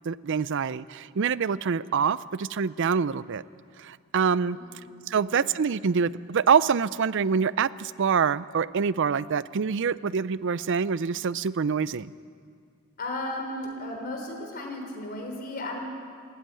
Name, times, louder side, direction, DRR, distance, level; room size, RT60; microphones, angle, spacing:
voice 1, 0.0-3.4 3.8-4.6 5.1-12.1, right 6 dB, 55° right, 18 dB, 0.5 m, -25 dB
voice 2, 4.5-4.9 5.1-5.5 13.0-15.8, left 1 dB, 45° left, 2 dB, 3.9 m, -35 dB
19.5 x 15.0 x 9.1 m, 2.2 s
head